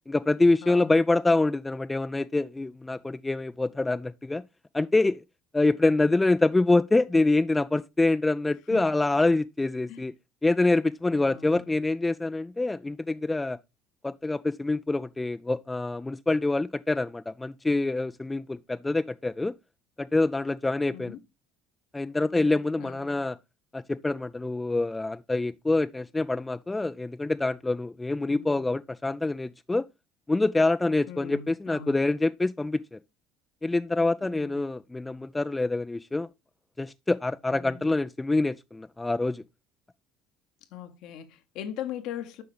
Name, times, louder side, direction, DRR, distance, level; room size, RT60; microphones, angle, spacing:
voice 1, 0.1-4.4 4.7-5.2 5.5-10.1 10.4-13.6 14.0-19.5 20.0-21.1 21.9-23.4 23.7-29.8 30.3-33.0 33.6-36.3 36.8-39.4, left 2 dB, 15° left, 0.4 m, -26 dB
voice 2, 0.6-1.0 8.7-8.9 9.9-10.0 11.1-11.6 20.9-21.2 22.8-23.2 28.3-28.6 31.1-32.0 34.2-34.6 37.5-37.8 40.7-42.4, left 9 dB, 60° left, 1.0 m, -40 dB
7.8 x 5.6 x 3.2 m
hypercardioid pair, 60°, 0 cm